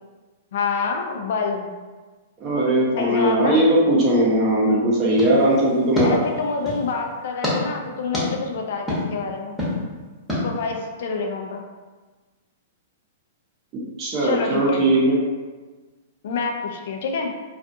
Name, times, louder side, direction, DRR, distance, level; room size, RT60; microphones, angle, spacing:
voice 1, 0.5-1.7 3.0-3.6 6.0-9.6 10.3-11.6 14.2-14.8 16.2-17.3, left 4 dB, 65° left, 3 dB, 0.4 m, -27 dB
voice 2, 2.4-6.2 14.0-15.2, right 1 dB, 35° right, -4 dB, 0.8 m, -19 dB
sound 1, 5.1-6.9 7.4-7.6 8.1-8.3 8.9-9.0 9.6-9.7 10.3-10.4, left 1 dB, ahead, 0.9 m, -26 dB
2.4 x 2.3 x 2.6 m, 1.3 s
hypercardioid pair, 125°, 0 cm